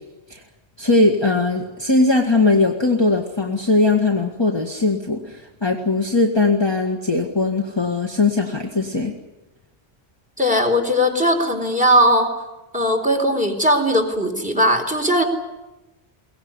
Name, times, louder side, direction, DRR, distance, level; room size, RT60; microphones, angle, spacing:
voice 1, 0.8-9.1, left 3 dB, 25° left, 1 dB, 1.9 m, -19 dB
voice 2, 10.4-12.3 12.7-15.2, equal, 5° right, 3 dB, 4.2 m, -18 dB
22.5 x 18.5 x 9.8 m, 1.0 s
omnidirectional pair, 1.1 m